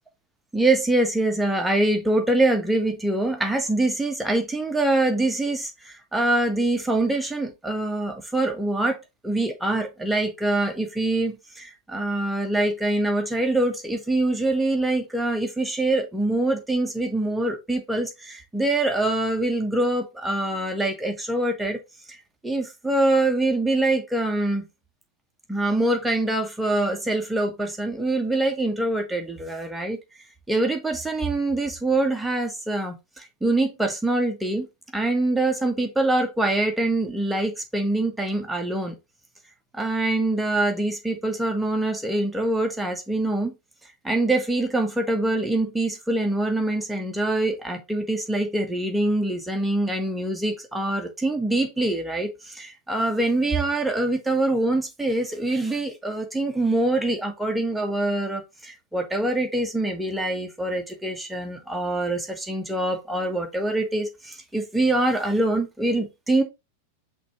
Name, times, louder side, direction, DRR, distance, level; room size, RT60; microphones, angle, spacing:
voice 1, 0.5-9.0 9.2-21.8 22.1-22.2 22.4-24.6 25.5-30.0 30.5-34.7 34.9-39.0 39.7-43.5 44.0-66.4, right 2 dB, 5° right, 1.5 m, -24 dB
5.8 x 3.6 x 4.5 m
figure-of-eight pair, 90°, 0 cm